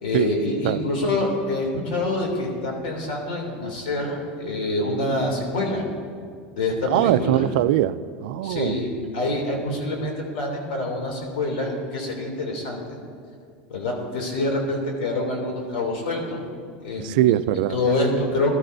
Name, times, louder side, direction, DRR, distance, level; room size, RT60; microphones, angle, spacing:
voice 1, 0.0-5.8 6.6-7.4 8.4-12.8 13.7-16.5 16.8-17.4 17.7-18.5, left 2 dB, 90° left, 0 dB, 2.9 m, -26 dB
voice 2, 6.9-8.8 17.0-17.8, right 14 dB, 75° right, 13 dB, 0.4 m, -21 dB
19.0 x 12.5 x 2.6 m, 2.2 s
supercardioid pair, 145°, 5 cm